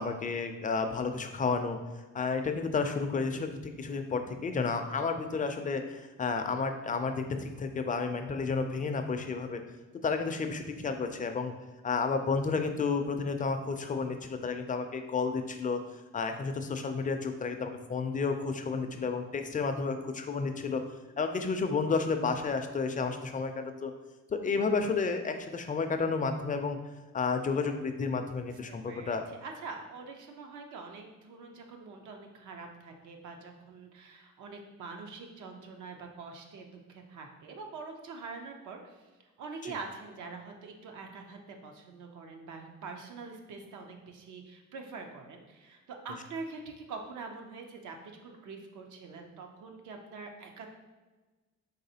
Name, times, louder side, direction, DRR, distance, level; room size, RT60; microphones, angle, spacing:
voice 1, 0.0-1.8 2.1-9.6 10.0-11.5 11.8-15.8 16.1-20.8 21.2-23.9 24.3-26.8 27.1-29.2 39.6-39.7, left 4 dB, 25° left, 6 dB, 0.4 m, -31 dB
voice 2, 28.5-39.1 39.4-50.7, right 4 dB, 80° right, 3 dB, 0.7 m, -44 dB
4.0 x 3.2 x 2.8 m, 1.2 s
cardioid pair, 90°, 30 cm